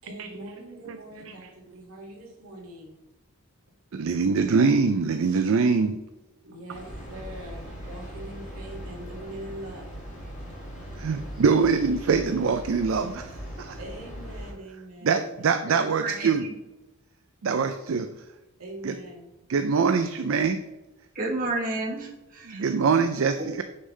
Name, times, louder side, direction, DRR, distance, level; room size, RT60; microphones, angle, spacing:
voice 1, 0.0-3.0 6.4-10.0 10.9-11.4 13.8-15.5 18.6-19.3, right 1 dB, 80° right, -2 dB, 2.1 m, -43 dB
voice 2, 3.9-6.0 11.0-13.8 15.0-16.5 17.4-18.1 18.8-18.9 19.5-20.6 22.5-23.6, right 5 dB, 65° right, 8 dB, 0.4 m, -23 dB
Train, 6.7-14.5, equal, 35° left, 2.1 m, -40 dB
voice 3, 15.6-16.5 21.1-22.6, right 2 dB, 40° right, -2 dB, 1.3 m, -31 dB
6.5 x 5.5 x 3.2 m, 1.1 s
head